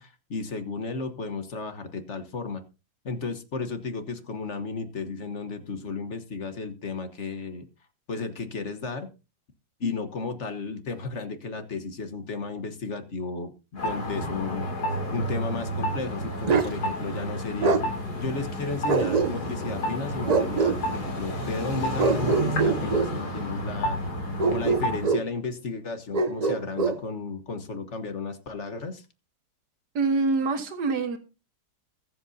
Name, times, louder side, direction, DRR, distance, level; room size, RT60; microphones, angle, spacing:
voice 1, 0.0-2.6 3.0-7.6 8.1-9.1 9.8-14.7 15.1-17.9 18.2-24.0 24.4-29.0, left 4 dB, 45° left, 9 dB, 1.5 m, -34 dB
sound 1, 13.8-25.1, equal, 70° left, 3.5 m, -31 dB
Bark, 16.5-16.7 17.6-17.8 18.9-19.6 20.3-20.8 22.0-23.1 24.4-25.3 26.1-27.0, right 4 dB, 55° right, 0.4 m, -23 dB
voice 2, 30.0-31.2, right 3 dB, 80° right, 7 dB, 1.9 m, -25 dB
21.0 x 7.9 x 2.7 m, 0.31 s
omnidirectional pair, 1.7 m